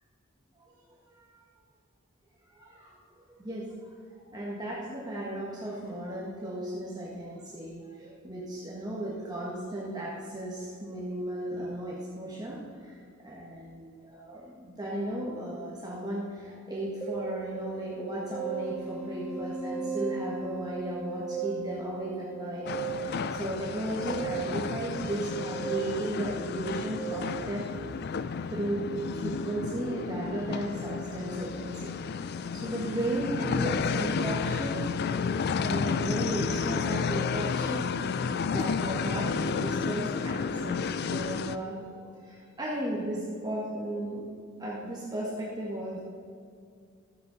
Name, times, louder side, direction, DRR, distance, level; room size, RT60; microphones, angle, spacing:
voice 1, 0.9-1.4 2.5-3.9 4.2-12.9 13.2-27.6 28.5-32.0 32.5-34.9 35.6-44.2 44.6-46.0, right 1 dB, 20° right, -5 dB, 1.4 m, -35 dB
sound 1, 17.0-27.1, right 6 dB, 10° left, 1.6 m, -37 dB
sound 2, 22.7-41.6, left 5 dB, 50° left, 0.4 m, -32 dB
13.5 x 7.8 x 4.0 m, 2.3 s
head